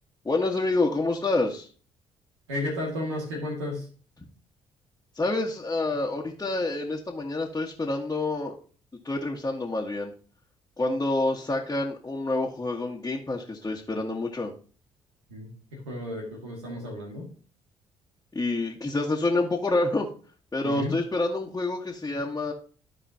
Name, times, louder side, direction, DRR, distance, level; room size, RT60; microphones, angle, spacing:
voice 1, 0.2-1.7 5.1-8.5 9.0-10.1 10.8-14.5 18.3-20.1 20.5-22.5, left 2 dB, 20° left, -3 dB, 1.6 m, -27 dB
voice 2, 2.5-3.9 15.3-17.3 20.6-21.0, left 1 dB, 80° right, -1 dB, 2.1 m, -33 dB
14.0 x 4.9 x 2.8 m, 0.40 s
hypercardioid pair, 45°, 15 cm